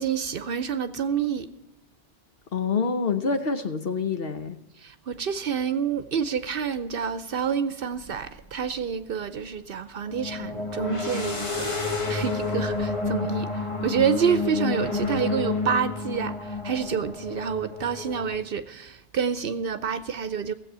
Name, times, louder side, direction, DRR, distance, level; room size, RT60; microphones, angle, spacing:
voice 1, 0.0-1.5 4.8-11.8 12.1-20.5, right 7 dB, 65° right, 0.8 m, -28 dB
voice 2, 2.5-4.6, left 5 dB, 65° left, 1.1 m, -26 dB
sound 1, 8.0-8.1 10.1-18.4, left 3 dB, 30° left, 1.5 m, -30 dB
16.0 x 7.9 x 6.7 m
omnidirectional pair, 1.1 m